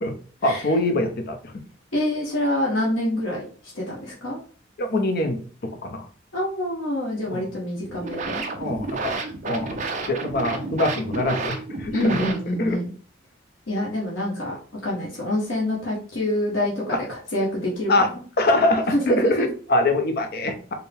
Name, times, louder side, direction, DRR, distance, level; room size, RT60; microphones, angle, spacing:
voice 1, 0.4-1.6 4.8-5.4 5.8-6.1 7.3-7.5 8.6-9.8 10.1-12.3 12.6-12.8 16.9-17.0 17.9-18.1 18.4-20.7, left 1 dB, 55° left, 6 dB, 0.6 m, -23 dB
voice 2, 1.9-3.5 3.7-4.4 6.3-8.4 11.9-12.9 13.7-14.6 14.8-17.9 18.9-19.5, left 1 dB, 90° left, -4 dB, 1.1 m, -26 dB
sound 1, 7.8-12.8, right 3 dB, 40° right, 0.6 m, -31 dB
4.4 x 2.1 x 3.4 m, 0.43 s
head